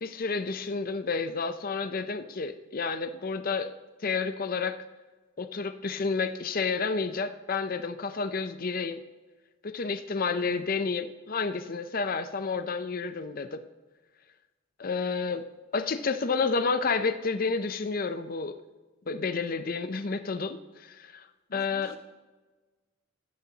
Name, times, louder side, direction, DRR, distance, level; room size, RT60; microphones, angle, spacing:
voice 1, 0.0-3.7 4.0-4.8 5.4-9.0 9.6-13.6 14.8-15.5 15.7-18.5 19.1-21.3 21.5-22.0, left 4 dB, 45° left, 10 dB, 0.6 m, -30 dB
voice 2, 21.5-22.0, right 1 dB, 75° left, 2 dB, 1.4 m, -46 dB
15.0 x 13.0 x 2.9 m, 1.2 s
head